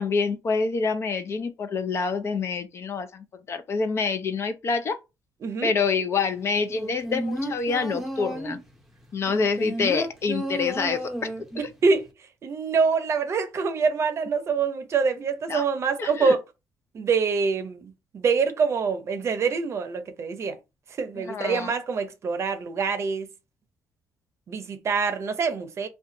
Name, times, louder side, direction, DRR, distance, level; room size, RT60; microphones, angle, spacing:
voice 1, 0.0-5.0 5.6-8.6 9.1-11.3 15.5-15.7 16.0-16.4 21.2-21.7, left 5 dB, 45° left, 0.5 m, -27 dB
sound 1, 6.8-8.7 9.3-11.7 12.0-12.1, right 1 dB, 5° right, 0.7 m, -32 dB
voice 2, 11.6-12.1 12.4-16.4 16.9-20.6 21.0-23.3 24.5-25.9, right 5 dB, 50° right, 0.6 m, -25 dB
2.5 x 2.3 x 3.8 m
cardioid pair, 95°, 6 cm